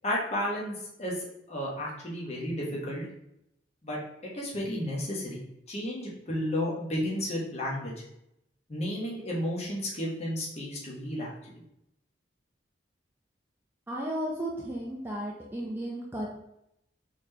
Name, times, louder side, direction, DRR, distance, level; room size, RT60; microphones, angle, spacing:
voice 1, 0.0-1.2 1.5-3.0 3.8-4.0 4.3-7.9 8.7-11.3, equal, 35° left, -4 dB, 1.0 m, -32 dB
voice 2, 13.9-16.3, right 1 dB, 10° right, -3 dB, 0.5 m, -34 dB
4.2 x 3.2 x 2.7 m, 0.79 s
head